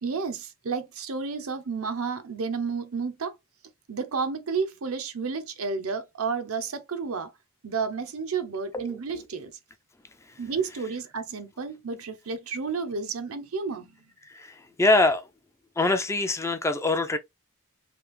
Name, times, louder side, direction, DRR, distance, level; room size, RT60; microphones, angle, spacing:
voice 1, 0.0-3.4 3.9-7.3 7.6-9.6 10.4-14.0, right 5 dB, 70° right, 0.7 m, -31 dB
voice 2, 14.2-15.3 15.8-17.2, left 2 dB, 15° left, 0.4 m, -24 dB
3.4 x 2.8 x 3.1 m
head